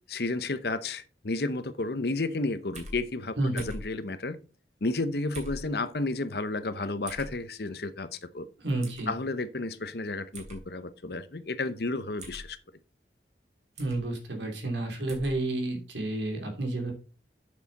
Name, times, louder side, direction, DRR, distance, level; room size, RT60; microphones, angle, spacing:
voice 1, 0.1-4.4 4.8-8.5 9.1-12.6, left 2 dB, 60° left, 0.8 m, -32 dB
sound 1, 2.7-3.0 3.6-3.9 5.3-5.6 7.1-7.3 8.8-9.0 10.3-10.6 12.2-12.5 13.8-14.0 15.1-15.3, right 1 dB, 40° right, 3.0 m, -41 dB
voice 2, 3.4-3.7 8.6-9.1 13.8-16.9, right 2 dB, 85° right, 3.0 m, -30 dB
8.4 x 6.8 x 4.1 m
head